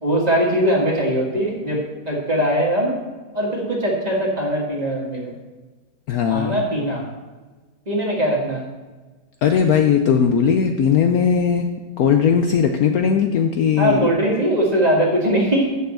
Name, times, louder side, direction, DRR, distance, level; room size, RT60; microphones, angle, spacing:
voice 1, 0.0-2.9 3.3-5.3 6.3-7.1 7.9-8.6 13.8-15.8, right 1 dB, 25° right, -2 dB, 1.9 m, -21 dB
voice 2, 6.1-6.6 9.4-11.7 12.0-14.1, left 7 dB, 65° left, 5 dB, 1.0 m, -18 dB
6.9 x 6.8 x 7.7 m, 1.3 s
omnidirectional pair, 1.9 m